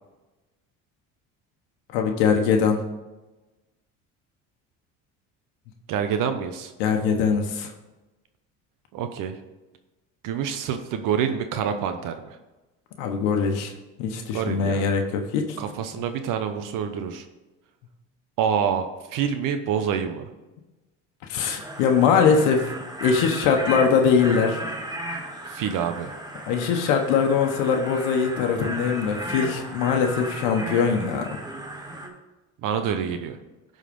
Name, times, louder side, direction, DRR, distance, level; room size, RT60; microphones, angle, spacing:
voice 1, 1.9-2.8 6.8-7.7 13.0-13.7 14.0-15.4 21.3-22.6 23.0-24.6 26.5-31.3, left 6 dB, 90° left, 3 dB, 1.1 m, -22 dB
voice 2, 5.9-6.7 8.9-9.3 10.2-12.4 14.3-14.9 15.6-17.2 18.4-20.3 25.5-26.1 32.6-33.4, right 7 dB, 65° right, 7 dB, 0.9 m, -27 dB
sound 1, 21.3-32.1, right 1 dB, 10° right, 2.0 m, -35 dB
11.0 x 4.1 x 5.3 m, 1.1 s
supercardioid pair, 100°, 35 cm